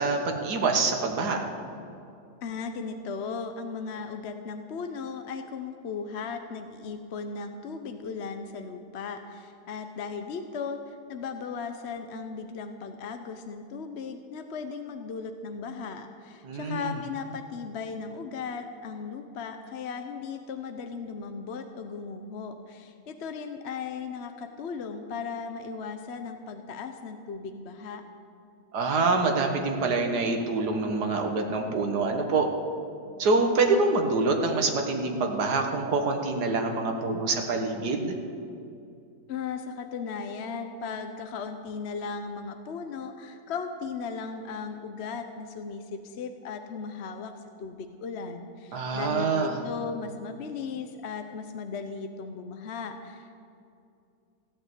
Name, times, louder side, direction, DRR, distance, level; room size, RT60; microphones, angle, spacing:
voice 1, 0.0-1.4 16.4-16.9 28.7-32.5 33.2-38.1 48.7-49.6, right 3 dB, 75° right, 3 dB, 1.9 m, -26 dB
voice 2, 2.4-28.0 39.3-47.3 47.6-53.4, left 5 dB, 50° left, 7 dB, 0.9 m, -37 dB
16.0 x 8.7 x 8.1 m, 2.5 s
omnidirectional pair, 1.7 m